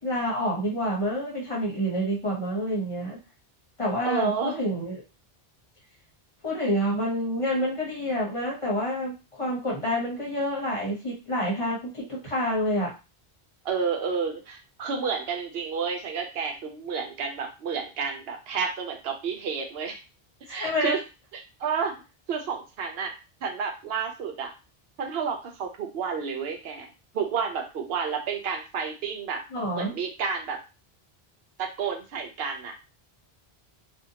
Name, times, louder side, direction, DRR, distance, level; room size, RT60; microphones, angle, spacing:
voice 1, 0.0-3.2 3.8-5.0 6.4-12.9 20.5-20.9 29.5-30.0, equal, 35° left, -4 dB, 0.9 m, -28 dB
voice 2, 4.0-4.6 13.6-20.0 20.5-21.0 21.3-21.9 22.3-23.1 23.4-24.5 25.0-26.9 27.1-29.4 29.8-30.6 31.6-32.7, right 6 dB, 75° right, 4 dB, 0.8 m, -30 dB
2.6 x 2.2 x 2.7 m, 0.29 s
omnidirectional pair, 1.0 m